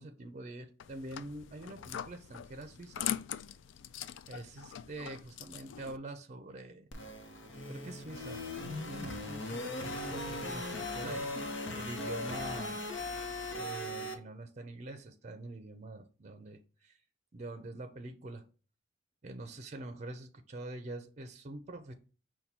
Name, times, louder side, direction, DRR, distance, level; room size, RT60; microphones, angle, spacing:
voice 1, 0.0-3.1 4.3-6.9 7.7-12.9 13.5-17.0 17.3-18.5 19.2-21.9, right 2 dB, 35° right, 0.5 m, -45 dB
sound 1, 0.8-6.0, left 10 dB, 70° left, 0.3 m, -42 dB
sound 2, 6.9-14.1, left 2 dB, 85° left, 0.8 m, -39 dB
5.3 x 2.2 x 4.3 m
head